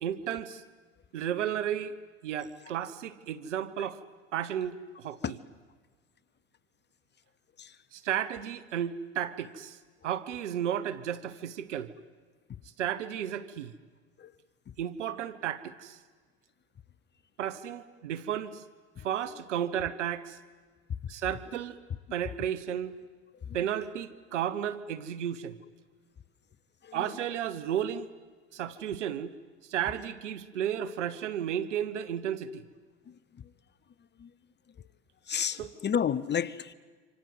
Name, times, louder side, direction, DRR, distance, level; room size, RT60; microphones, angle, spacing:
voice 1, 0.0-0.6 1.1-1.9 2.2-4.0 4.3-5.4 7.9-9.8 10.0-11.9 12.8-13.7 14.8-16.0 17.4-18.6 19.0-20.4 21.1-21.8 22.1-23.0 23.5-25.6 26.9-28.1 28.5-29.3 29.7-32.6 35.6-35.7, right 10 dB, 85° right, 15 dB, 1.3 m, -33 dB
voice 2, 35.3-36.7, left 8 dB, 30° left, 19 dB, 1.0 m, -31 dB
28.0 x 26.5 x 7.9 m, 1.4 s
hypercardioid pair, 85°, 35 cm